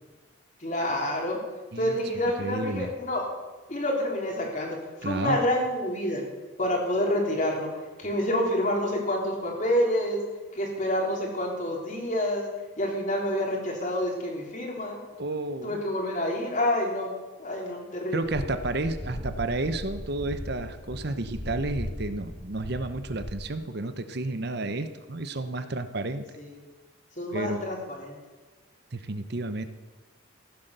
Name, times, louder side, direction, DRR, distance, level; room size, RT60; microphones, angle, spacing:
voice 1, 0.6-1.4 1.8-3.3 3.7-4.8 5.0-6.2 6.6-7.7 8.0-10.2 10.5-12.4 12.8-15.0 15.6-17.1 17.4-18.2 26.4-26.5 27.2-28.1, left 1 dB, 40° left, -1 dB, 3.5 m, -28 dB
voice 2, 2.4-2.9 5.0-5.4 15.2-15.8 18.1-26.2 27.3-27.7 28.9-29.7, right 2 dB, 55° right, 10 dB, 0.8 m, -31 dB
sound 1, 18.3-23.3, equal, 20° left, 2.5 m, -37 dB
15.0 x 10.0 x 6.8 m, 1.2 s
head